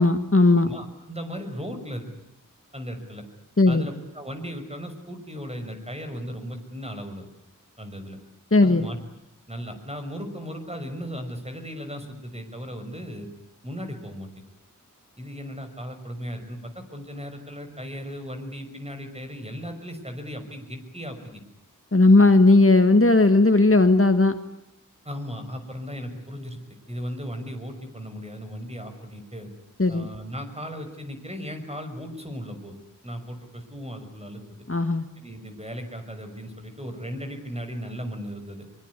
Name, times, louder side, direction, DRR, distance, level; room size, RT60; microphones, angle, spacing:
voice 1, 0.0-0.7 3.6-3.9 8.5-8.9 21.9-24.4 29.8-30.1 34.7-35.0, left 2 dB, 40° left, 8 dB, 1.7 m, -17 dB
voice 2, 0.6-2.1 2.7-3.2 3.7-7.3 7.8-8.2 8.6-9.0 9.5-13.3 13.6-14.4 15.2-21.4 22.1-22.3 25.0-26.6 26.9-29.5 29.9-32.7 33.0-34.4 35.2-38.7, equal, 20° right, 6 dB, 6.1 m, -36 dB
24.0 x 24.0 x 9.8 m, 0.82 s
wide cardioid pair, 40°, 33 cm